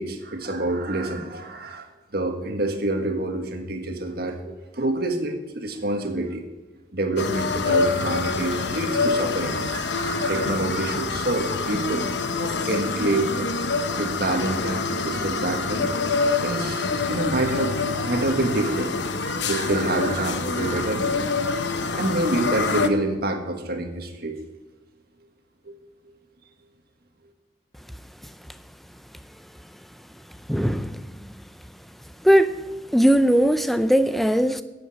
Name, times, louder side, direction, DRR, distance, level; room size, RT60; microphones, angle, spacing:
voice 1, 0.0-6.4 6.9-12.0 12.4-15.9 16.4-21.2 21.9-24.4 25.6-25.7, right 2 dB, 55° right, 4 dB, 1.7 m, -27 dB
sound 1, 7.2-22.9, left 4 dB, 70° left, 0.9 m, -26 dB
voice 2, 30.5-31.0 32.2-32.5 32.9-34.6, equal, ahead, 11 dB, 0.5 m, -19 dB
11.0 x 8.5 x 8.5 m, 1.1 s
head